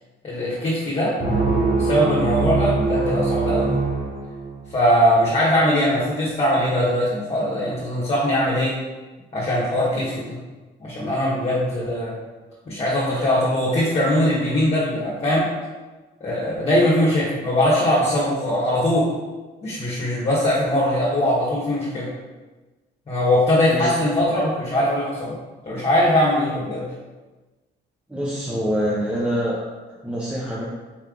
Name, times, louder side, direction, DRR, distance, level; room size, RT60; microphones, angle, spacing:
voice 1, 0.2-1.1 1.8-3.7 4.7-8.8 9.3-10.4 10.8-12.1 12.6-15.5 16.2-19.1 19.6-22.1 23.1-25.3 25.6-26.9, equal, 30° left, -7 dB, 1.4 m, -21 dB
sound 1, 1.2-4.8, right 3 dB, 40° right, 1.1 m, -22 dB
voice 2, 28.1-29.6 30.0-30.6, equal, 5° right, -6 dB, 0.7 m, -25 dB
4.3 x 3.2 x 3.8 m, 1.2 s
cardioid pair, 90°, 20 cm